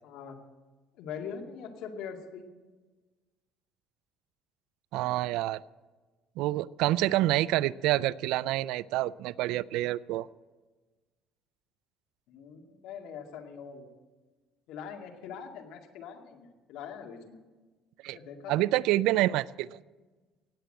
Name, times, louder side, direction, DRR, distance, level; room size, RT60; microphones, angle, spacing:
voice 1, 0.0-0.4 1.0-2.5 12.3-13.9 14.7-17.4 18.1-18.8, left 7 dB, 75° left, 3 dB, 2.1 m, -42 dB
voice 2, 4.9-5.6 6.4-10.3 18.0-18.2 18.5-19.8, right 16 dB, 75° right, 19 dB, 0.3 m, -27 dB
18.0 x 8.3 x 7.7 m, 1.3 s
cardioid pair, 135°, 0 cm